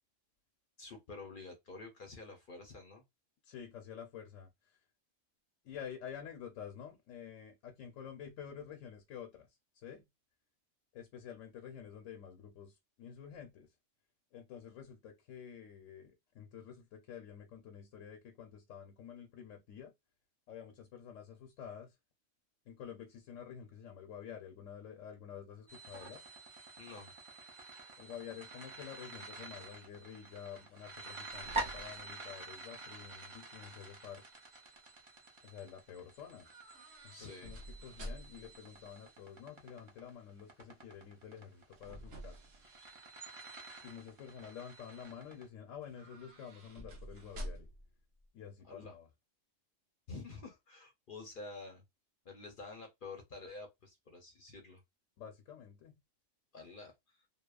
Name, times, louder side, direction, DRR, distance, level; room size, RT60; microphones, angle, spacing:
voice 1, 0.8-3.0 26.8-27.1 29.4-29.5 29.8-29.9 37.1-37.5 48.6-49.0 50.1-51.8 52.2-54.8 56.5-57.3, left 3 dB, 50° left, 0.7 m, -49 dB
voice 2, 3.4-4.8 5.6-9.5 9.7-10.0 10.9-13.7 14.3-19.9 20.5-22.0 22.7-26.2 28.0-34.2 35.4-36.5 37.0-42.4 43.8-47.7 48.3-49.1 55.2-56.0, left 8 dB, 75° left, 0.9 m, -49 dB
sound 1, 25.7-45.4, right 2 dB, 40° right, 0.4 m, -47 dB
sound 2, 31.2-33.3 33.6-34.2 36.4-38.5 41.3-43.4 43.9-44.3 45.8-47.9 48.2-48.3, equal, 75° right, 1.2 m, -50 dB
2.8 x 2.0 x 2.3 m
omnidirectional pair, 1.4 m